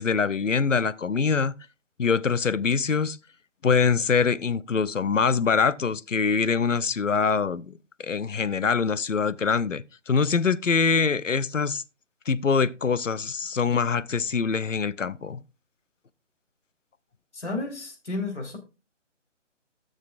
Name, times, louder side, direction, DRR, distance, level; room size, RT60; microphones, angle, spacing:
voice 1, 0.0-1.5 2.0-3.2 3.6-7.7 8.0-11.8 12.3-15.4, left 5 dB, 85° left, 0.8 m, -24 dB
voice 2, 17.3-18.6, left 2 dB, 65° left, 3.8 m, -32 dB
16.0 x 6.6 x 2.5 m
figure-of-eight pair, 150°, 37 cm